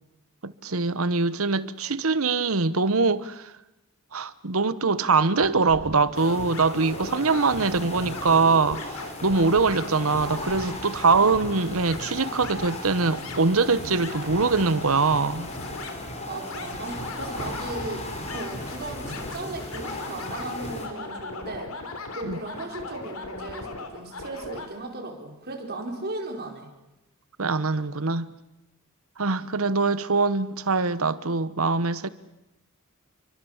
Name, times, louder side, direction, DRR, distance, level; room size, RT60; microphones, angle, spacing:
voice 1, 0.4-3.5 4.1-15.5 22.2-22.4 27.4-28.3 29.2-32.1, right 4 dB, 70° right, 1.1 m, -23 dB
sound 1, 5.4-24.7, left 2 dB, 75° left, 3.6 m, -39 dB
sound 2, 6.1-20.9, left 1 dB, 30° left, 4.5 m, -37 dB
voice 2, 16.3-21.7 22.1-26.7, right 2 dB, 50° right, 4.6 m, -36 dB
29.5 x 24.0 x 7.3 m
head